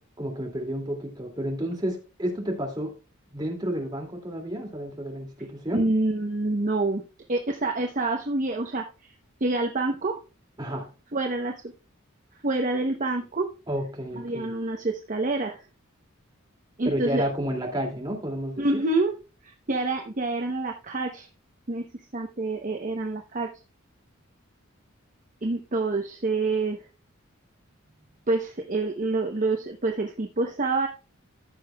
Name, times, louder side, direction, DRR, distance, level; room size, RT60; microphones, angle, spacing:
voice 1, 0.2-2.9 3.3-5.8 10.6-10.9 13.7-14.5 16.9-18.8, equal, 20° right, 2.4 m, -31 dB
voice 2, 5.7-7.0 7.3-8.9 9.4-10.2 11.1-11.6 12.4-13.5 14.1-15.6 16.8-17.3 18.6-19.2 19.4-21.3 21.7-21.8 22.1-23.5 25.4-26.8 28.3-30.9, right 2 dB, 40° right, 0.8 m, -27 dB
14.5 x 6.8 x 2.3 m
head